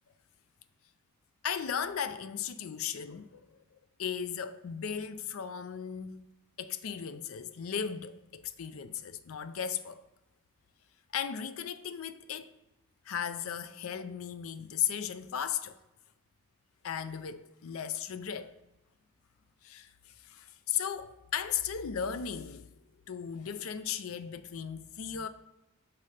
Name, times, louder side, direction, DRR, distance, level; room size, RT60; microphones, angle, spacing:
voice 1, 1.4-3.6 4.0-6.2 6.6-10.0 11.1-12.5 13.1-15.8 16.8-18.6 19.6-22.7 23.1-25.3, left 8 dB, 65° left, 0.4 m, -36 dB
5.9 x 4.3 x 4.8 m
head